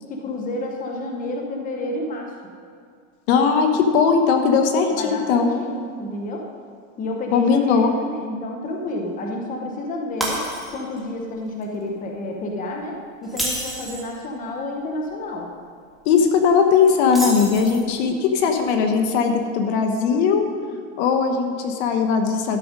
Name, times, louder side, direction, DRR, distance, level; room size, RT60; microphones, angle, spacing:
voice 1, 0.1-2.3 4.9-6.5 7.0-10.5 10.7-15.5, left 1 dB, 20° left, 1 dB, 1.0 m, -30 dB
voice 2, 3.3-5.5 7.3-7.9 16.0-20.5 21.0-22.6, left 5 dB, 55° left, 5 dB, 1.2 m, -19 dB
Shatter, 10.2-11.0 11.4-11.6 13.2-14.1 17.1-18.0, right 1 dB, ahead, 1.8 m, -29 dB
12.5 x 6.7 x 5.2 m, 2.2 s
supercardioid pair, 135°, 40 cm